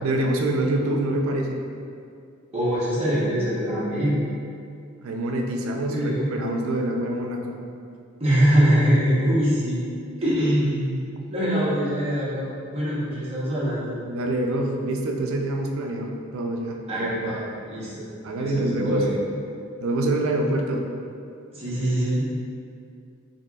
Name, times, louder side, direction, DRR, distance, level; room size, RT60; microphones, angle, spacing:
voice 1, 0.0-1.6 5.0-7.6 14.1-17.4 18.2-19.1 19.8-20.9, right 1 dB, 75° right, 2 dB, 0.4 m, -26 dB
voice 2, 2.5-4.2 5.9-6.3 8.2-9.8 10.2-11.0 11.3-12.4 12.7-13.9 16.9-17.4 17.7-18.0 18.4-19.2 21.5-22.3, equal, 30° right, -9 dB, 0.9 m, -23 dB
4.1 x 3.0 x 2.3 m, 2.4 s
head